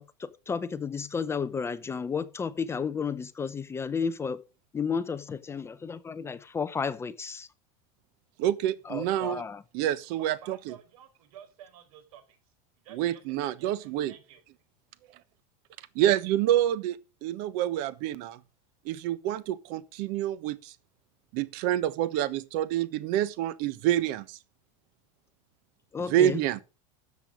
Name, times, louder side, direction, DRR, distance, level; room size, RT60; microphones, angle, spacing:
voice 1, 0.0-4.4 4.7-7.5 8.9-9.6 25.9-26.4, left 6 dB, 15° left, 0.6 m, -32 dB
voice 2, 8.4-9.4 9.7-10.7 12.9-14.1 16.0-18.4 18.8-20.7 21.3-24.4 26.0-26.6, right 12 dB, 55° right, 1.1 m, -27 dB
voice 3, 10.2-12.4 12.8-14.4, right 9 dB, 80° right, 4.3 m, -52 dB
13.0 x 7.4 x 5.0 m
supercardioid pair, 155°, 17 cm